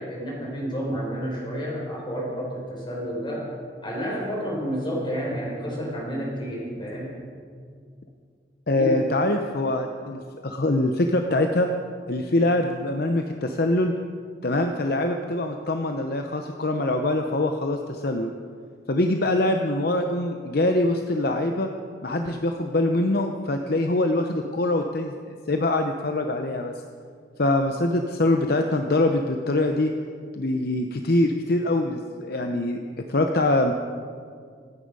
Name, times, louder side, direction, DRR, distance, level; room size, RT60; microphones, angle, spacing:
voice 1, 0.0-3.5 3.8-7.1 8.7-9.0 32.5-32.6, equal, 25° left, -3 dB, 5.0 m, -30 dB
voice 2, 8.7-11.7 12.1-13.9 14.4-18.3 18.9-21.7 22.0-25.1 25.5-26.7 27.4-29.9 30.3-32.8 33.1-33.7, left 2 dB, 55° left, 5 dB, 0.8 m, -24 dB
25.5 x 9.9 x 5.4 m, 2.1 s
head